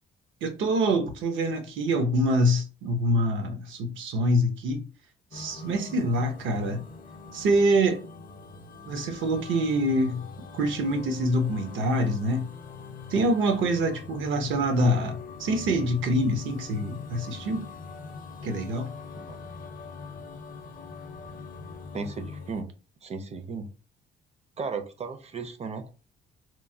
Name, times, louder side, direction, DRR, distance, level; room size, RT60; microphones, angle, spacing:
voice 1, 0.4-4.8 5.3-6.8 7.3-8.0 8.9-10.2 10.5-12.5 13.1-17.6 18.4-18.9, right 1 dB, 75° right, 0.7 m, -25 dB
sound 1, 5.3-22.6, left 4 dB, 45° left, 0.5 m, -43 dB
voice 2, 21.9-22.7 23.0-23.7 24.6-25.9, right 4 dB, 35° right, 0.5 m, -35 dB
3.0 x 2.1 x 2.6 m
cardioid pair, 90°, 20 cm